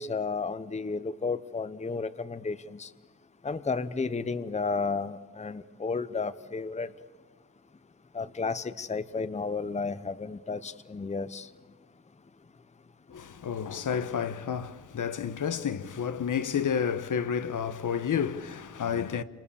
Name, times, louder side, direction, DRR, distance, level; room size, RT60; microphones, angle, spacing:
voice 1, 0.0-2.9 3.4-6.9 8.1-11.5, left 4 dB, 20° left, 0.8 m, -32 dB
voice 2, 13.1-19.2, left 7 dB, 60° left, 1.2 m, -30 dB
29.0 x 26.5 x 7.1 m
cardioid pair, 85°, 34 cm